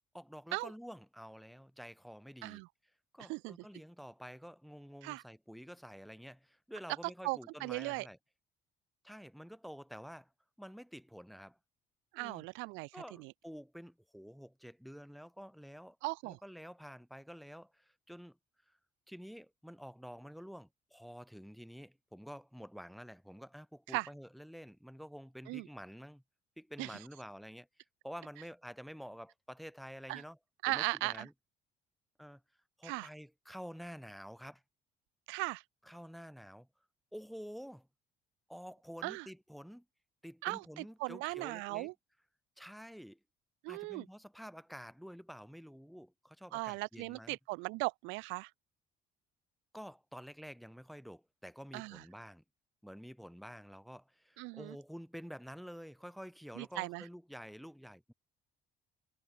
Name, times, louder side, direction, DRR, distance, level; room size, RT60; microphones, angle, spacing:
voice 1, 0.1-2.6 3.1-8.2 9.0-10.3 10.6-11.6 12.2-12.4 12.9-16.0 16.2-18.4 18.7-18.8 19.1-26.2 26.6-27.7 28.0-30.4 30.7-31.3 32.2-32.4 32.8-34.6 35.8-36.7 37.1-37.9 38.5-39.8 40.2-41.9 42.6-43.2 43.7-47.4 49.7-52.4 52.8-58.1, equal, ahead, 1.3 m, -49 dB
voice 2, 7.2-8.1 12.1-12.9 13.2-13.3 16.0-16.4 23.9-24.1 25.5-25.7 26.8-26.9 30.1-30.2 30.6-31.3 32.8-33.1 35.3-35.6 39.0-39.3 40.4-41.9 43.6-44.1 46.5-48.5 51.7-52.0 54.4-54.8 56.6-57.0, right 26 dB, 85° right, 0.5 m, -38 dB
supercardioid pair, 75°, 19 cm